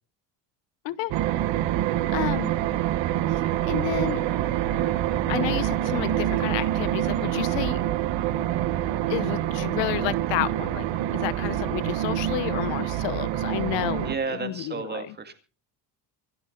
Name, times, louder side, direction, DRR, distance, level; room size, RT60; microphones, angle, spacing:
sound 1, 1.1-14.2, right 12 dB, 70° right, 1.4 m, -26 dB
voice 1, 2.1-2.6 3.6-4.2 4.7-4.8 5.3-7.8 9.1-10.9 11.1-15.1, left 16 dB, 70° left, 1.0 m, -31 dB
toilet moan, 3.9-7.0, equal, ahead, 2.9 m, -44 dB
voice 2, 14.0-15.3, right 4 dB, 20° right, 2.1 m, -32 dB
25.5 x 8.6 x 3.9 m
cardioid pair, 145°, 46 cm